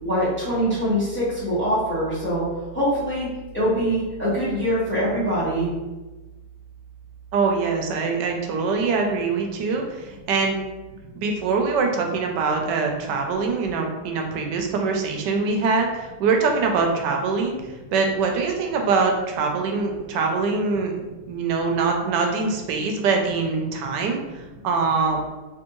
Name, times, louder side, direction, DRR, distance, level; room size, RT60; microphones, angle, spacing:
voice 1, 0.0-2.4 2.7-3.3 3.5-5.7, equal, 10° left, -10 dB, 1.0 m, -23 dB
voice 2, 7.3-10.6 11.1-20.9 21.3-25.2, right 4 dB, 85° right, 2 dB, 1.2 m, -23 dB
3.4 x 2.7 x 3.0 m, 1.2 s
omnidirectional pair, 1.8 m